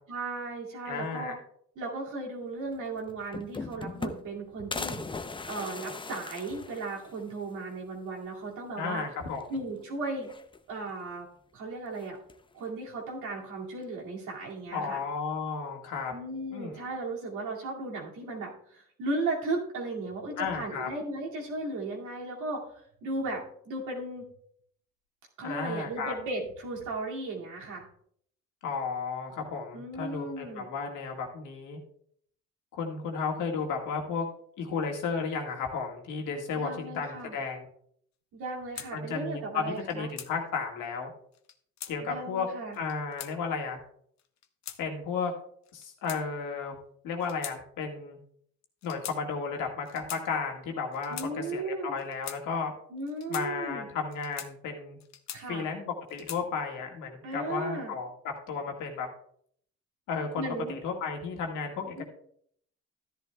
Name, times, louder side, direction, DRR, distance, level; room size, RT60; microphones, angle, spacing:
voice 1, 0.1-1.3 1.8-5.0 5.5-9.0 9.5-10.3 10.7-11.3 11.5-12.2 12.5-15.0 16.1-22.7 23.0-24.2 25.4-27.9 29.7-30.7 36.5-37.3 38.3-40.1 42.1-42.8 51.1-51.9 52.9-53.9 55.3-55.7 57.2-57.9 60.3-60.8 62.0-62.1, right 2 dB, 85° right, -2 dB, 2.4 m, -36 dB
voice 2, 0.9-1.3 8.8-9.5 14.7-16.1 16.5-16.9 20.4-20.9 25.4-26.1 28.6-31.8 32.7-34.3 34.6-37.7 38.9-41.1 41.9-42.5 42.7-43.8 44.8-45.3 45.7-46.8 47.0-48.2 48.8-52.7 53.3-55.0 55.5-58.1 58.5-59.1 60.1-62.0, left 5 dB, 85° left, 1 dB, 1.8 m, -33 dB
sound 1, 2.7-2.8 3.1-4.4 4.7-7.3 7.7-7.8 8.1-8.2 9.3-9.8 10.2-10.9 11.9-12.5, left 3 dB, 15° left, 0.6 m, -39 dB
sound 2, 38.8-38.9 39.7-40.3 41.3-41.9 42.7-43.3 44.2-44.8 45.6-46.6 47.2-47.6 47.8-48.1 48.8-49.2 49.9-50.2 50.9-51.3 52.0-52.4 53.1-53.5 54.1-54.5 55.0-55.6 56.1-56.4, left 10 dB, 65° left, 0.8 m, -42 dB
13.0 x 10.5 x 2.3 m, 0.65 s
cardioid pair, 90°, 30 cm